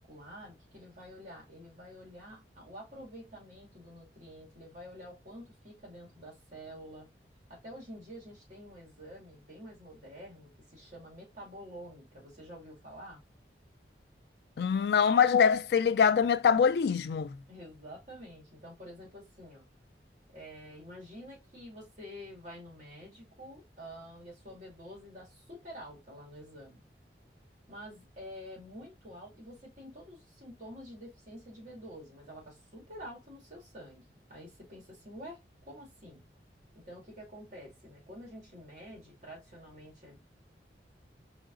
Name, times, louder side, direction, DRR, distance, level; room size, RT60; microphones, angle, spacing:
voice 1, 0.0-7.1 7.5-13.2 17.5-19.6 20.3-26.8 27.7-36.2 36.7-40.2, equal, 45° right, 2.0 m, -48 dB
voice 2, 14.6-17.4, left 6 dB, 65° left, 0.3 m, -24 dB
4.9 x 2.8 x 2.5 m
head